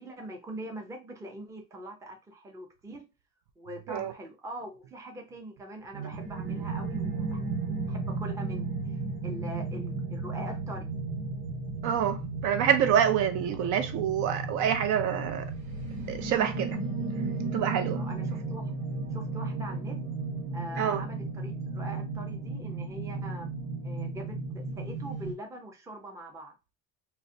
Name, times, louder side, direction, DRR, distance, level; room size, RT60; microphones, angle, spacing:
voice 1, 0.0-3.1 3.6-7.4 7.9-9.0 9.2-10.9 17.9-18.6 19.1-20.0 20.5-23.5 23.8-26.5, right 1 dB, 10° right, 0.5 m, -42 dB
sound 1, 6.1-25.3, right 3 dB, 80° right, 1.3 m, -34 dB
voice 2, 11.8-15.5 16.1-16.8 17.5-18.0 20.8-21.0, right 9 dB, 55° right, 0.5 m, -27 dB
3.9 x 2.1 x 2.6 m
cardioid pair, 140°, 35 cm